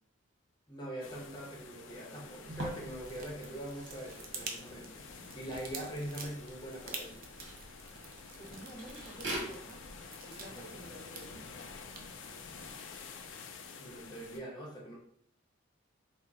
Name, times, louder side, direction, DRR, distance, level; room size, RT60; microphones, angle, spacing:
voice 1, 0.7-5.1 5.3-7.1 13.8-15.0, right 1 dB, 20° left, -3 dB, 0.8 m, -43 dB
sound 1, 1.0-14.4, left 5 dB, 65° left, 0.4 m, -50 dB
sound 2, 2.5-10.1, right 1 dB, 65° right, 1.3 m, -46 dB
sound 3, 2.9-12.8, right 4 dB, 45° right, 0.5 m, -49 dB
voice 2, 8.4-9.8 10.2-11.4, right 1 dB, ahead, -8 dB, 0.5 m, -50 dB
3.5 x 2.1 x 4.0 m, 0.66 s
head